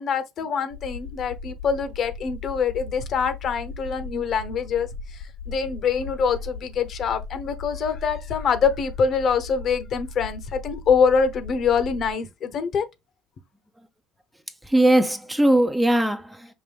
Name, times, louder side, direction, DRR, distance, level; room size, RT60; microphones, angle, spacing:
voice 1, 0.0-12.9, left 6 dB, 45° left, 0.7 m, -24 dB
sound 1, 0.7-12.1, left 4 dB, 75° left, 0.4 m, -38 dB
voice 2, 14.6-16.5, right 1 dB, 10° right, 0.5 m, -20 dB
5.3 x 2.5 x 3.3 m
supercardioid pair, 105°, 0 cm